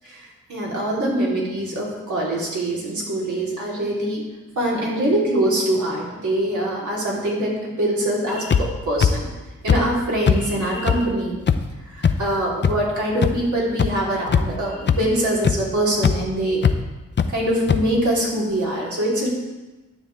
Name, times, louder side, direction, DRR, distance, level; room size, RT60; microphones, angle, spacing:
voice 1, 0.0-4.2 4.6-9.3 9.6-11.4 11.9-16.6 17.3-19.3, right 1 dB, 70° right, -5 dB, 3.6 m, -23 dB
sound 1, 8.5-8.6 9.0-9.1 9.7-9.8 10.3-10.4 10.9-11.0 11.5-11.6 12.0-12.1 12.6-12.7 13.2-13.3 13.8-13.9 14.3-14.6 14.9-15.0 15.4-15.6 16.0-16.1 16.6-16.7 17.2-17.3 17.7-17.8, left 7 dB, 35° left, 0.5 m, -17 dB
12.0 x 8.9 x 3.5 m, 1.1 s
wide cardioid pair, 110°, 30 cm